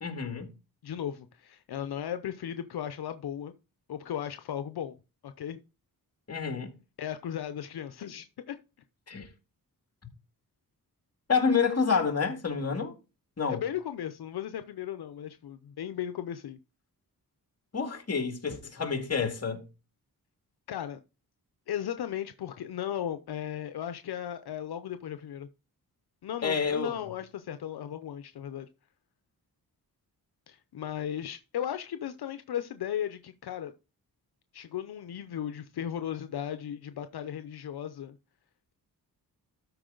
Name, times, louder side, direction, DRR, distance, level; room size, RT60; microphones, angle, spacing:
voice 1, 0.0-0.5 6.3-6.7 9.1-9.3 11.3-12.9 13.4-13.6 17.7-19.6 26.4-27.0, left 5 dB, 40° left, 2.2 m, -28 dB
voice 2, 0.8-3.5 3.9-5.0 5.2-5.6 7.0-8.6 13.5-16.6 20.7-21.0 21.7-25.5 26.2-28.7 30.5-33.7 34.5-38.2, left 10 dB, 75° left, 0.7 m, -36 dB
13.0 x 4.5 x 3.8 m
cardioid pair, 80°, 38 cm